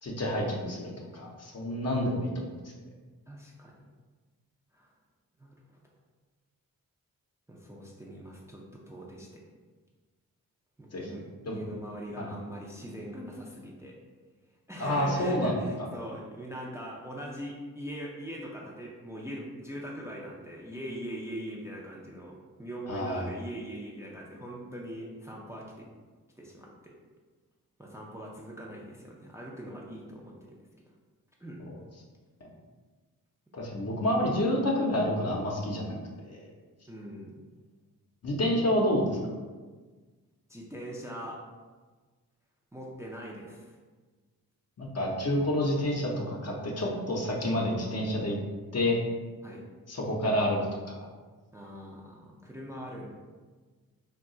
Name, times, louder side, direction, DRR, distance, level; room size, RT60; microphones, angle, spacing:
voice 1, 0.0-2.7 10.9-11.1 11.5-11.6 12.2-12.3 14.8-15.5 22.9-23.3 31.7-31.8 32.4-32.5 33.5-36.5 38.2-39.2 44.8-48.4 48.7-49.0 49.9-50.6 50.8-51.0, left 1 dB, 45° left, -1 dB, 0.7 m, -29 dB
voice 2, 3.3-3.8 4.7-4.9 5.4-5.8 7.5-9.4 10.8-14.0 14.7-25.9 26.4-26.9 27.8-30.6 31.4-31.7 33.5-33.7 36.9-37.4 40.5-41.4 42.7-43.8 49.4-49.7 51.5-53.1, equal, 10° right, -3 dB, 0.5 m, -42 dB
2.3 x 2.3 x 3.8 m, 1.4 s
cardioid pair, 50°, 37 cm